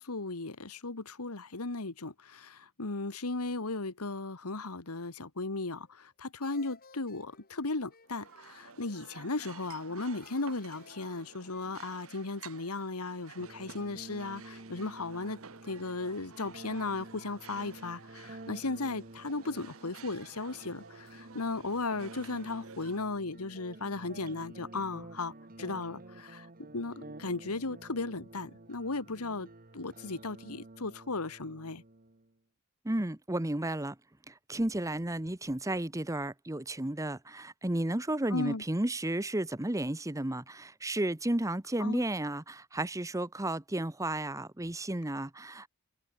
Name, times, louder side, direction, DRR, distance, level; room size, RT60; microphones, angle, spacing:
voice 1, 0.0-25.3 25.6-26.5 26.7-31.8 38.3-38.6 41.8-42.0, left 3 dB, 85° left, 1.8 m, -36 dB
sound 1, 5.6-6.1 6.4-9.5 10.2-12.0, left 4 dB, 45° left, 4.6 m, -60 dB
sound 2, 8.0-23.0, right 5 dB, 65° right, 1.6 m, -52 dB
sound 3, 13.3-32.3, right 2 dB, 40° right, 1.7 m, -51 dB
voice 2, 32.8-34.0 34.3-45.7, right 1 dB, 15° right, 1.0 m, -33 dB
head